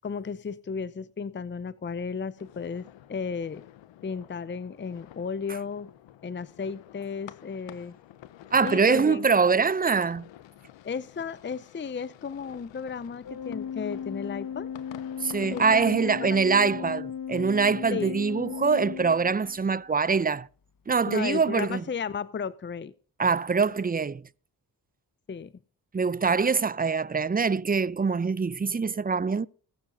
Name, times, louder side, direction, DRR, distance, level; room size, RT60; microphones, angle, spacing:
voice 1, 0.0-3.6 4.0-5.9 6.2-7.9 8.6-9.3 10.8-14.7 15.4-16.9 17.9-18.2 21.1-22.9 25.3-25.5, left 6 dB, 25° left, 0.7 m, -34 dB
sound 1, 2.4-15.9, left 12 dB, 80° left, 0.8 m, -50 dB
voice 2, 8.5-10.3 15.2-20.5 20.9-21.8 23.2-24.2 25.9-29.5, right 5 dB, 20° right, 0.5 m, -24 dB
Organ, 13.2-19.8, left 8 dB, 50° left, 1.2 m, -36 dB
20.5 x 7.0 x 3.9 m
supercardioid pair, 40°, 43 cm